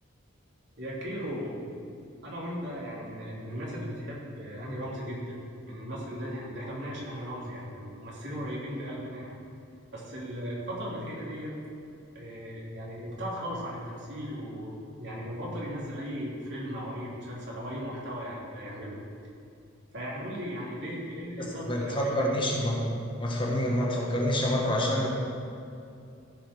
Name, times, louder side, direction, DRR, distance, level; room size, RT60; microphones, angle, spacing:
voice 1, 0.8-1.6 2.2-5.4 5.7-9.3 9.9-11.5 12.1-19.0 19.9-22.2, equal, 60° right, -5 dB, 3.1 m, -37 dB
voice 2, 21.4-22.9 23.2-25.1, equal, 25° left, -2 dB, 1.5 m, -27 dB
15.0 x 5.7 x 6.1 m, 2.5 s
head